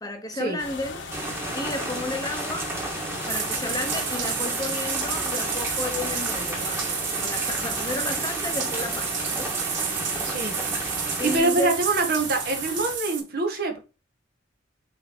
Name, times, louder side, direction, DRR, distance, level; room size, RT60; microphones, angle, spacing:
voice 1, 0.0-1.0 1.5-2.7 3.3-9.6 11.2-11.8, left 2 dB, 20° left, 1.1 m, -32 dB
sound 1, 0.6-13.0, left 4 dB, 85° left, 1.7 m, -39 dB
sound 2, 1.1-11.4, right 2 dB, 15° right, 1.8 m, -33 dB
Bathtub (filling or washing), 3.1-13.2, right 7 dB, 80° right, 1.9 m, -30 dB
voice 2, 10.2-10.6 11.2-13.8, right 3 dB, 55° right, 1.9 m, -25 dB
7.7 x 3.7 x 4.4 m
head